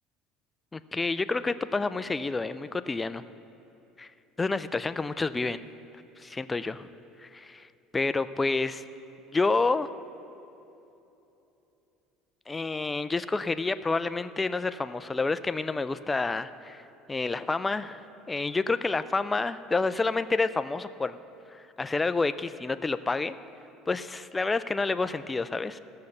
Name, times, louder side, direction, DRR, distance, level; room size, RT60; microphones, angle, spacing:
voice 1, 0.7-3.2 4.0-4.1 4.4-5.6 6.2-6.9 7.2-7.7 7.9-8.8 9.3-9.9 12.5-16.8 17.1-18.0 18.3-21.2 21.5-23.4 23.9-25.8, left 3 dB, 15° left, 12 dB, 0.4 m, -29 dB
15.5 x 6.5 x 7.1 m, 2.9 s
cardioid pair, 140°, 0 cm